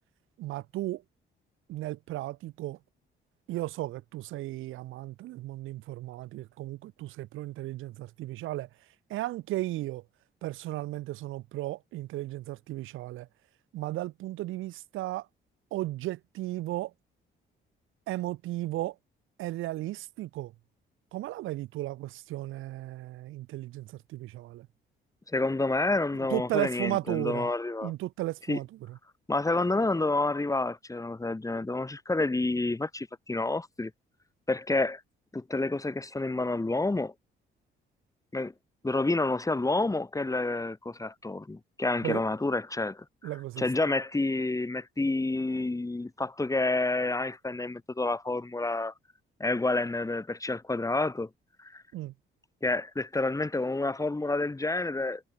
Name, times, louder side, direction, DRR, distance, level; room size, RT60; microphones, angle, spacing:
voice 1, 0.4-1.0 1.7-2.8 3.5-8.7 9.1-10.0 10.4-13.3 13.7-15.3 15.7-16.9 18.1-18.9 19.4-20.5 21.1-24.7 26.3-27.5 27.8-29.0 42.0-42.2 43.2-43.6 51.9-52.1, right 16 dB, 85° right, 1.2 m, -35 dB
voice 2, 25.3-27.9 28.5-28.6 29.3-33.9 34.5-35.0 35.3-37.1 38.3-38.5 38.8-48.9 49.4-51.3 51.6-51.8 52.6-55.2, left 2 dB, 15° left, 2.7 m, -29 dB
cardioid pair, 90°, 20 cm